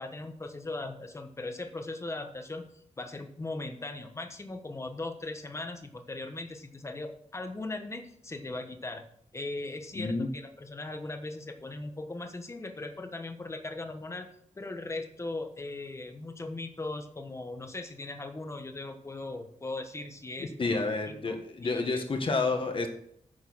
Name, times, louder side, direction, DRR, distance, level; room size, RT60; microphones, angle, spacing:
voice 1, 0.0-2.6 3.0-9.0 9.3-14.3 14.6-20.8 21.3-21.4 21.6-22.0, left 2 dB, 20° left, 6 dB, 1.3 m, -39 dB
voice 2, 9.9-10.3 20.4-22.9, left 3 dB, 45° left, 5 dB, 1.7 m, -30 dB
9.9 x 6.4 x 6.2 m, 0.69 s
wide cardioid pair, 145°, 13 cm